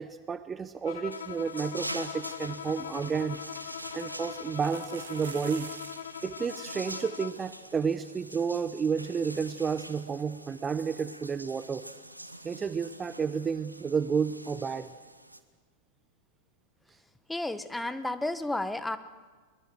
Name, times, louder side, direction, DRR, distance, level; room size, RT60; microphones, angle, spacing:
voice 1, 0.0-3.4 3.9-5.7 6.2-11.8 12.4-14.9, right 6 dB, 20° right, 14 dB, 0.7 m, -31 dB
Bowed string instrument, 0.8-7.5, left 10 dB, 60° left, 0.7 m, -41 dB
sound 1, 1.1-15.4, right 1 dB, 85° right, 1.2 m, -45 dB
sound 2, 2.8-2.9 3.2-3.3 4.4-6.2 6.4-6.5 6.7-7.0 7.5-7.6 7.9-8.0 10.1-10.2, right 6 dB, 70° right, 2.1 m, -46 dB
voice 2, 17.3-19.0, left 2 dB, 5° left, 12 dB, 1.1 m, -32 dB
22.0 x 22.0 x 7.6 m, 1.5 s
figure-of-eight pair, 90°, 0 cm